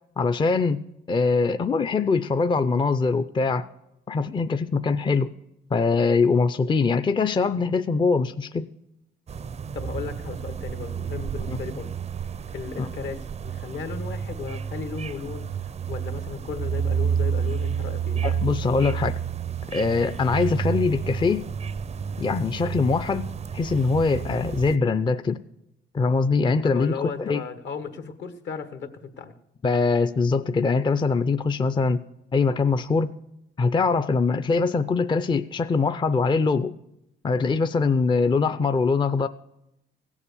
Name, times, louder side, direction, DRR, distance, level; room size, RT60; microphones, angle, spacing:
voice 1, 0.2-0.8 1.1-3.7 4.1-5.3 5.7-8.7 11.5-11.6 12.8-12.9 18.2-19.2 19.7-21.5 22.2-23.3 23.5-25.4 25.9-27.4 29.6-32.0 32.3-33.1 33.6-36.7 37.2-39.3, left 4 dB, 25° left, 11 dB, 0.5 m, -22 dB
sound 1, 9.3-24.8, right 7 dB, 35° right, 0.4 m, -30 dB
voice 2, 9.7-11.9 12.5-18.2 26.7-29.3, left 5 dB, 65° left, 10 dB, 1.3 m, -35 dB
16.0 x 7.3 x 6.9 m, 0.84 s
cardioid pair, 90°, 20 cm